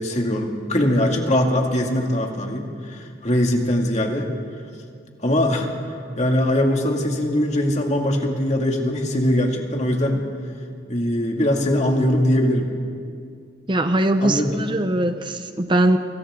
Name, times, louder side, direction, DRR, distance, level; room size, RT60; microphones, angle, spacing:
voice 1, 0.0-4.3 5.2-5.7 6.2-10.2 10.9-12.7 14.2-14.6, left 1 dB, 40° left, 1 dB, 2.3 m, -21 dB
voice 2, 13.7-16.0, right 1 dB, 25° right, 8 dB, 0.8 m, -21 dB
30.0 x 25.0 x 3.8 m, 2.3 s
head